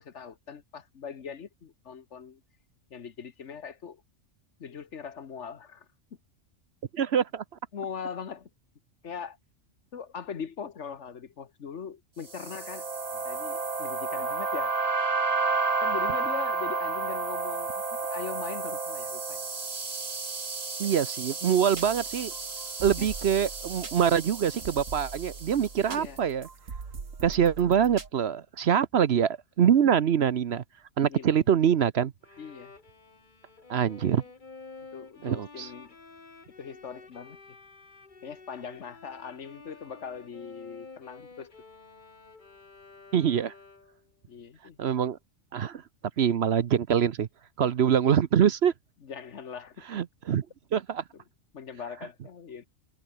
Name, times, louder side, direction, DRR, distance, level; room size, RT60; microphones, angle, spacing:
voice 1, 0.0-2.4 2.9-4.0 4.6-5.9 7.7-8.5 9.0-9.4 9.9-12.9 13.1-14.7 15.8-19.4 22.9-23.1 25.9-26.2 27.3-27.4 31.1-31.4 32.4-32.7 34.9-36.0 36.6-37.4 38.2-41.5 44.3-44.8 49.0-49.9 51.1-51.2 51.5-52.7, left 6 dB, 65° left, 1.5 m, -41 dB
voice 2, 6.9-7.4 20.8-22.3 22.8-26.5 27.2-30.6 31.0-32.1 33.7-34.2 35.2-35.7 43.1-43.5 44.8-45.2 45.5-45.8 46.2-47.3 47.6-48.7 49.9-50.5 50.7-51.0, right 8 dB, 60° right, 1.0 m, -24 dB
sound 1, 12.3-25.7, right 4 dB, 30° right, 1.4 m, -32 dB
sound 2, 21.7-28.1, right 5 dB, 85° right, 2.5 m, -42 dB
Bowed string instrument, 32.2-44.1, left 3 dB, 40° left, 1.9 m, -50 dB
omnidirectional pair, 1.3 m